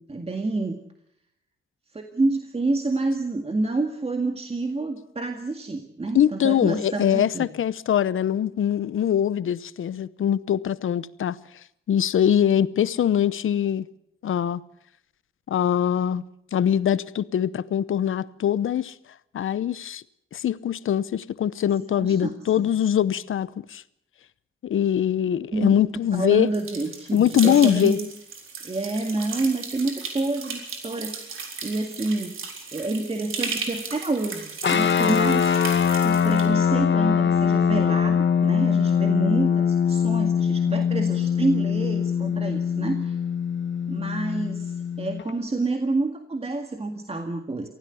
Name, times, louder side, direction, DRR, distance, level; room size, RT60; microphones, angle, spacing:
voice 1, 0.1-0.8 1.9-7.5 22.0-22.7 25.5-28.1 28.6-43.2 43.9-47.7, right 2 dB, 30° right, 1.9 m, -28 dB
voice 2, 6.1-11.4 11.9-13.9 14.2-14.6 15.5-16.2 16.5-18.9 19.3-20.0 20.3-23.8 24.6-26.5 27.1-28.0, left 9 dB, 80° left, 0.8 m, -22 dB
sound 1, 26.5-36.5, right 5 dB, 80° right, 4.0 m, -36 dB
sound 2, 34.6-45.3, left 7 dB, 65° left, 1.5 m, -22 dB
24.0 x 16.0 x 7.0 m
cardioid pair, 80°, 21 cm